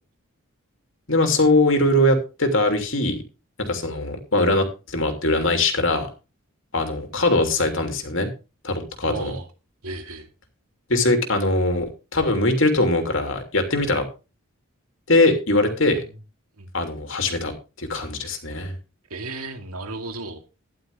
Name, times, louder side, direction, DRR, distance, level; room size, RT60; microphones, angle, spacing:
voice 1, 1.1-3.2 3.6-6.1 6.7-8.3 8.6-9.3 10.9-11.9 12.1-14.0 15.1-16.0 16.7-18.7, left 2 dB, 60° left, 5 dB, 3.1 m, -21 dB
voice 2, 9.0-9.4 9.8-10.3 15.9-16.0 16.6-16.7 19.1-20.4, right 2 dB, 85° right, 6 dB, 2.4 m, -34 dB
13.0 x 11.5 x 3.6 m, 0.31 s
head